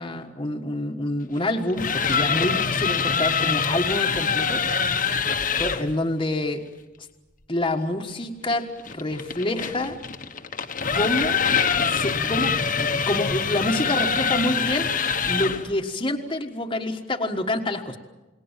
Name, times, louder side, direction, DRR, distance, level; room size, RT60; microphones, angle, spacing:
voice 1, 0.0-4.6 5.6-6.6 7.5-10.0 10.9-11.4 11.9-14.9 15.2-18.0, left 1 dB, 25° left, 2 dB, 1.5 m, -27 dB
sound 1, 1.6-5.9 8.5-15.7, left 6 dB, 45° left, 1.3 m, -24 dB
29.0 x 20.0 x 7.4 m, 1.1 s
head